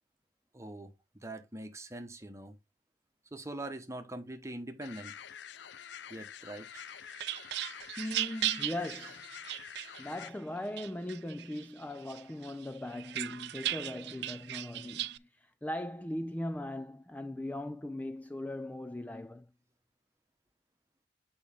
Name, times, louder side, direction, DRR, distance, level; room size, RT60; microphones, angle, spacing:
voice 1, 0.5-0.9 1.2-2.6 3.3-5.1 6.1-6.8, right 1 dB, 15° right, 1.1 m, -43 dB
sound 1, 4.8-10.3, left 8 dB, 75° left, 0.5 m, -47 dB
sound 2, 6.7-10.3 10.8-11.7 12.1-15.2, right 14 dB, 70° right, 0.4 m, -37 dB
voice 2, 8.0-9.2 10.0-19.5, left 1 dB, 10° left, 0.3 m, -39 dB
8.1 x 4.9 x 3.5 m
head